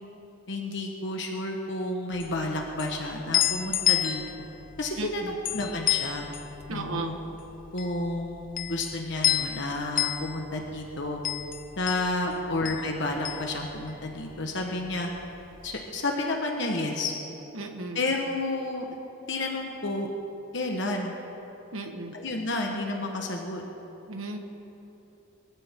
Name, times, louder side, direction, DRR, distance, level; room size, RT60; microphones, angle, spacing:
voice 1, 0.5-4.2 4.8-6.3 6.7-7.2 7.7-11.2 11.8-15.1 15.6-17.1 17.9-18.9 19.3-20.1 20.5-21.2 22.1-23.6, left 2 dB, 60° left, 1 dB, 1.4 m, -31 dB
sound 1, 2.1-14.4 14.6-15.7, left 12 dB, 40° left, 0.5 m, -30 dB
voice 2, 5.0-5.3 6.7-7.2 12.3-12.4 17.5-18.0 21.7-22.1 24.1-24.4, right 2 dB, 85° right, 3 dB, 1.5 m, -35 dB
22.5 x 15.0 x 3.8 m, 2.9 s
head